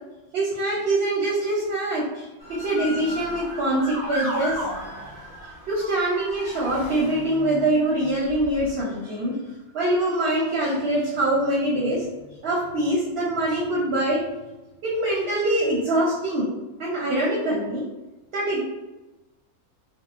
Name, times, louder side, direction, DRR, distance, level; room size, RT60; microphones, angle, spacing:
voice 1, 0.3-4.6 5.7-9.4 9.7-12.0 12.4-14.2 14.8-16.5 16.8-17.8 18.3-18.6, right 1 dB, 60° right, -4 dB, 0.7 m, -24 dB
Motor vehicle (road) / Siren, 2.4-7.6 8.3-8.7, equal, 20° left, 0.6 m, -35 dB
3.6 x 2.0 x 2.4 m, 1.1 s
omnidirectional pair, 1.5 m